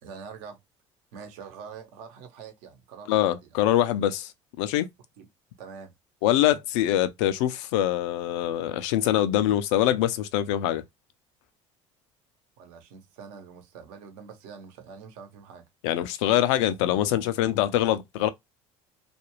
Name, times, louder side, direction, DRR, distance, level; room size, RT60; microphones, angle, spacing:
voice 1, 0.0-0.6 1.1-3.7 5.2-5.3 5.6-5.9 12.6-15.6, right 6 dB, 70° right, 0.9 m, -45 dB
voice 2, 3.1-4.3 4.6-4.9 6.2-10.8 15.8-18.3, left 12 dB, 75° left, 0.5 m, -24 dB
2.5 x 2.3 x 2.9 m
hypercardioid pair, 75°, 15 cm